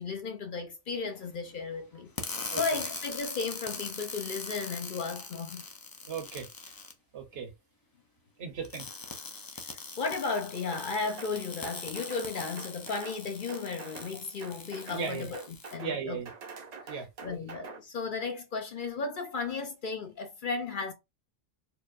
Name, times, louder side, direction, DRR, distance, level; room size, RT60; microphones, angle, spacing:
voice 1, 0.0-2.1 2.5-5.7 9.6-9.7 10.0-16.2 16.8-20.9, left 4 dB, 55° left, 0.7 m, -35 dB
sound 1, 2.2-6.9 8.6-15.7, left 3 dB, 35° left, 0.3 m, -41 dB
voice 2, 6.1-6.5 7.1-7.5 8.4-8.8 14.9-15.3 15.8-16.3 16.9-17.1, right 6 dB, 65° right, 1.0 m, -36 dB
sound 2, 10.7-11.4 11.6-12.3 12.6-13.2 13.5-14.1 14.4-15.1 15.3-16.0 16.3-17.8, right 5 dB, 45° right, 0.6 m, -45 dB
4.4 x 2.2 x 2.5 m
omnidirectional pair, 1.2 m